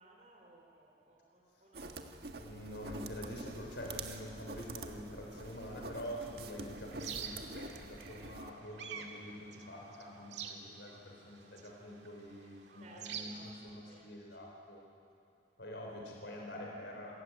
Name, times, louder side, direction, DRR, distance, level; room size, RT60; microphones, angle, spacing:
voice 1, 0.0-1.9 12.6-14.3, right 2 dB, 40° right, -1 dB, 3.4 m, -59 dB
sound 1, 1.7-8.5, right 2 dB, 65° right, 1.6 m, -47 dB
voice 2, 2.4-14.8 15.6-17.2, equal, 90° left, -1 dB, 4.0 m, -46 dB
sound 2, 5.4-13.2, right 7 dB, 85° right, 2.1 m, -49 dB
28.5 x 15.0 x 9.4 m, 2.6 s
head